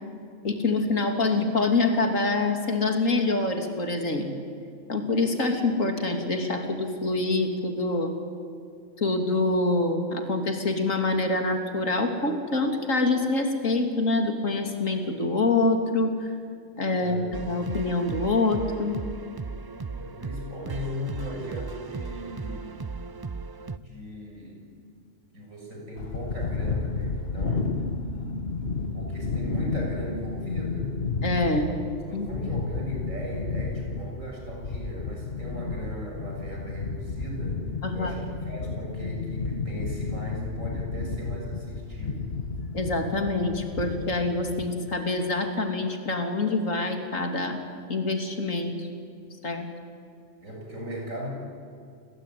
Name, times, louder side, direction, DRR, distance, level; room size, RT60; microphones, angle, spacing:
voice 1, 0.4-4.3 4.9-8.1 9.0-16.3 16.8-17.2 17.5-19.0 31.2-32.3 37.8-38.1 42.7-47.6 47.9-48.9 49.4-49.7, left 2 dB, 75° left, 5 dB, 3.3 m, -26 dB
voice 2, 16.9-17.3 19.9-22.9 23.8-24.6 25.3-27.9 28.9-31.0 32.1-37.6 37.9-42.3 50.4-51.3, equal, 80° right, -1 dB, 6.9 m, -38 dB
sound 1, 17.3-23.8, right 4 dB, 35° right, 0.4 m, -36 dB
sound 2, 26.0-44.7, left 4 dB, 50° left, 1.7 m, -32 dB
29.0 x 22.0 x 9.3 m, 2.4 s
omnidirectional pair, 1.4 m